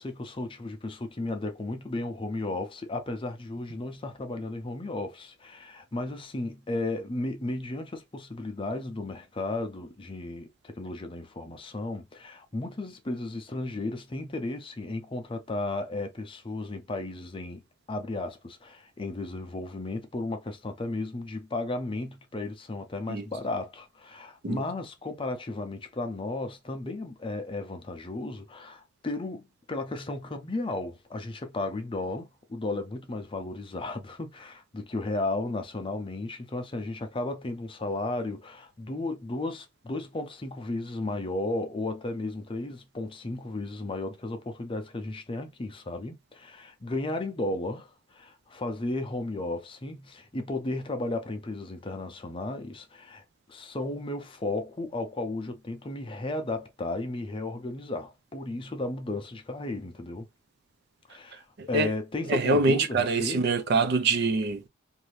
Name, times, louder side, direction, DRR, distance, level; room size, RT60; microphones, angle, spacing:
voice 1, 0.0-17.6 17.9-53.2 53.5-60.3 61.1-63.5, left 2 dB, 25° left, 0.5 m, -34 dB
voice 2, 61.6-61.9 62.3-64.7, right 3 dB, 50° right, 0.4 m, -25 dB
2.6 x 2.6 x 3.1 m
head